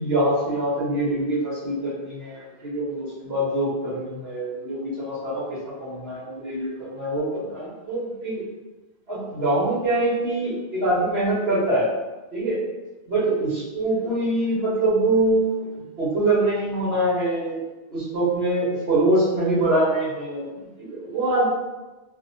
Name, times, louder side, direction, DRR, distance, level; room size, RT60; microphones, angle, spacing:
voice 1, 0.0-8.4 9.1-11.9 12.3-12.6 13.1-15.7 16.0-17.6 17.9-21.5, right 1 dB, 75° right, -7 dB, 1.3 m, -24 dB
2.8 x 2.1 x 2.7 m, 1.1 s
omnidirectional pair, 1.1 m